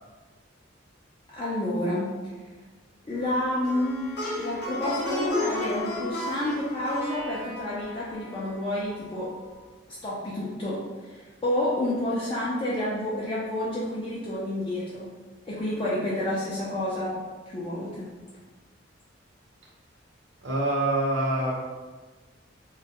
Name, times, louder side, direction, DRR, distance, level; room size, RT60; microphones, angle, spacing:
voice 1, 1.3-2.1 3.0-4.0 4.4-9.3 10.0-15.1 15.5-17.1 17.5-18.1, left 1 dB, 25° left, -8 dB, 0.3 m, -29 dB
Plucked string instrument, 3.6-8.9, left 2 dB, 55° left, 0.7 m, -34 dB
voice 2, 20.4-21.7, right 1 dB, 65° right, -3 dB, 0.6 m, -25 dB
2.2 x 2.0 x 2.7 m, 1.3 s
head